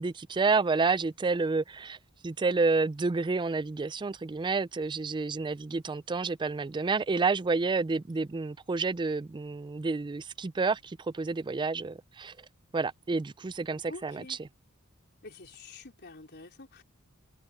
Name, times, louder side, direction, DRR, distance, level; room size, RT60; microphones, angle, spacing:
voice 1, 0.0-2.0 2.2-12.3 12.7-14.5, right 4 dB, 20° right, 0.3 m, -29 dB
voice 2, 13.9-14.4 15.2-16.8, left 3 dB, 50° left, 4.2 m, -47 dB
head